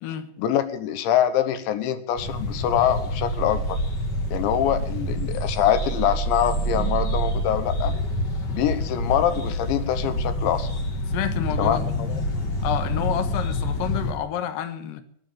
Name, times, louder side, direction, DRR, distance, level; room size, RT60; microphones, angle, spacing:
voice 1, 0.4-3.8 4.3-7.9 8.5-10.7 11.6-12.2, left 10 dB, 85° left, 11 dB, 3.5 m, -24 dB
sound 1, 2.1-14.1, equal, 45° left, 1.4 m, -27 dB
voice 2, 11.1-12.0 12.6-15.0, left 10 dB, 60° left, 8 dB, 2.7 m, -29 dB
21.5 x 7.2 x 9.3 m, 0.69 s
omnidirectional pair, 5.1 m